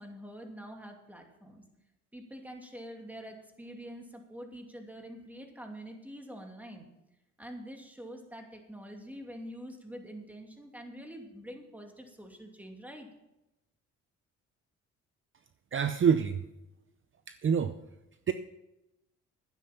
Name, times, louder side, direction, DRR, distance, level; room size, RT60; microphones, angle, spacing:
voice 1, 0.0-1.6 2.1-6.9 7.4-13.1, equal, 5° right, 2 dB, 2.6 m, -46 dB
voice 2, 15.7-16.4 17.3-17.8 18.3-18.4, right 7 dB, 40° right, 10 dB, 0.7 m, -26 dB
12.0 x 9.8 x 5.9 m, 0.92 s
cardioid pair, 90°, 30 cm